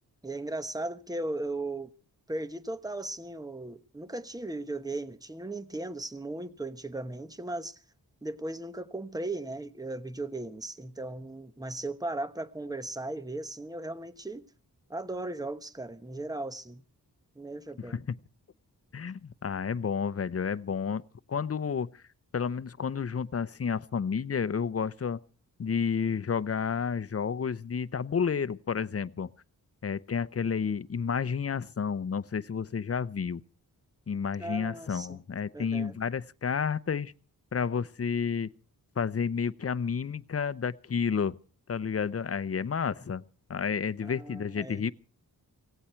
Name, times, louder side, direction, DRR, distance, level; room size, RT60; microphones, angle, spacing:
voice 1, 0.2-1.9 2.3-7.8 8.2-14.4 14.9-16.8 17.4-18.0 34.4-35.2 35.5-36.0 44.0-44.9, right 2 dB, 10° right, 1.1 m, -37 dB
voice 2, 17.8-18.2 18.9-21.0 21.3-22.0 22.3-25.2 25.6-29.3 29.8-33.4 34.1-37.1 37.5-38.5 39.0-41.4 41.7-43.2 43.5-44.9, left 6 dB, 40° left, 0.7 m, -31 dB
17.5 x 17.0 x 4.5 m
wide cardioid pair, 135°, 36 cm